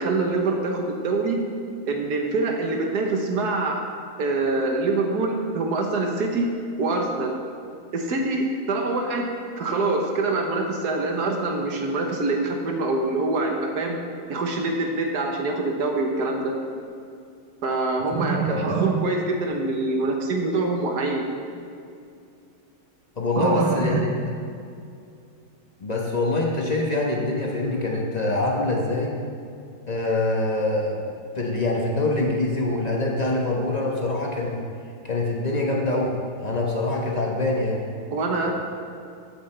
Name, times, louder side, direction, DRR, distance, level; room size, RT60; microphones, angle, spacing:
voice 1, 0.0-1.4 1.9-3.8 4.2-6.5 6.8-7.3 7.9-9.3 9.6-14.0 14.3-16.5 17.6-21.3 23.4-24.0 38.1-38.5, right 3 dB, 55° right, 2 dB, 1.4 m, -24 dB
voice 2, 23.2-24.1 25.8-29.1 29.9-34.7 35.0-37.8, left 2 dB, 35° left, -1 dB, 0.7 m, -25 dB
13.0 x 8.8 x 3.3 m, 2.4 s
omnidirectional pair, 2.4 m